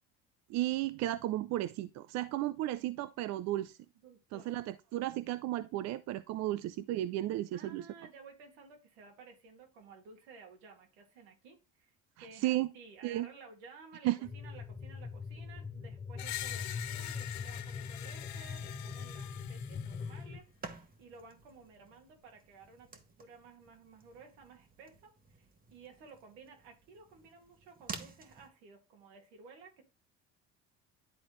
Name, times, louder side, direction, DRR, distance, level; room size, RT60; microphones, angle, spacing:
voice 1, 0.5-3.8 4.3-7.9 12.2-12.7 13.0-13.3 14.0-14.2, right 15 dB, 60° right, 0.5 m, -34 dB
voice 2, 4.0-4.5 7.5-29.8, right 4 dB, 85° right, 2.1 m, -55 dB
sound 1, 14.2-20.4, left 5 dB, 20° left, 1.1 m, -42 dB
Screech, 16.2-20.2, left 14 dB, 60° left, 0.7 m, -44 dB
sound 2, 18.0-28.5, right 4 dB, 30° right, 1.2 m, -52 dB
10.5 x 3.9 x 3.1 m
supercardioid pair, 80°, 31 cm